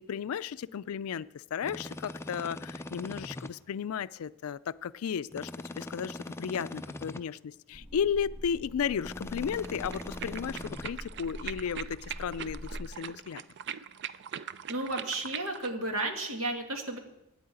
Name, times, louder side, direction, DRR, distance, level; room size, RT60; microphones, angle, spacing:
voice 1, 0.0-5.5 5.8-13.4, left 7 dB, 90° left, 17 dB, 0.4 m, -34 dB
sound 1, 1.6-3.5 5.3-7.2 9.0-10.9, left 1 dB, 10° left, 0.4 m, -41 dB
sound 2, 7.7-12.9, equal, 5° right, 0.9 m, -44 dB
sound 3, 9.6-15.7, right 9 dB, 55° right, 0.4 m, -42 dB
voice 2, 14.7-17.0, right 2 dB, 75° right, 3 dB, 1.9 m, -33 dB
9.5 x 8.6 x 8.1 m, 0.90 s
head